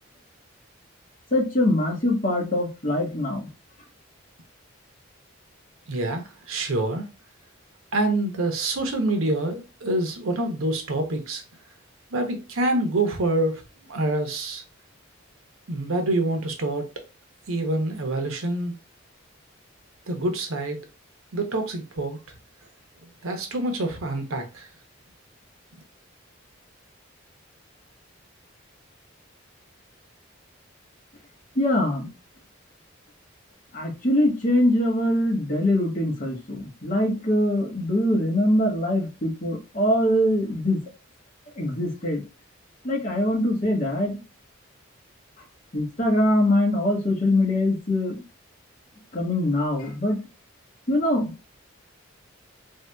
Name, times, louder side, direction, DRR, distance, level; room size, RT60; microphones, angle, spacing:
voice 1, 1.3-3.5 31.6-32.1 33.7-40.8 41.6-42.2 42.8-44.2 45.7-48.2 49.1-50.2 50.9-51.3, left 1 dB, 40° left, 1.1 m, -23 dB
voice 2, 5.9-7.1 7.9-11.4 12.1-13.6 13.9-14.6 15.7-16.9 17.5-18.7 20.1-20.8 21.3-22.2 23.2-24.7, right 2 dB, 85° right, 0.7 m, -26 dB
3.4 x 2.7 x 2.2 m
head